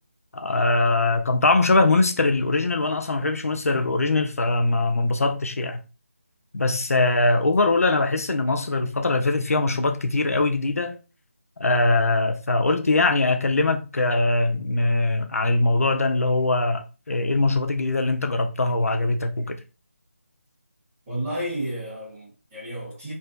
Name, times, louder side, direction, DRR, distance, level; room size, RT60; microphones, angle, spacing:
voice 1, 0.3-5.8 6.5-11.0 11.6-19.6, left 2 dB, 80° left, 0.5 m, -22 dB
voice 2, 21.1-23.1, right 1 dB, 10° right, 1.3 m, -31 dB
3.4 x 2.7 x 2.2 m
figure-of-eight pair, 170°, 8 cm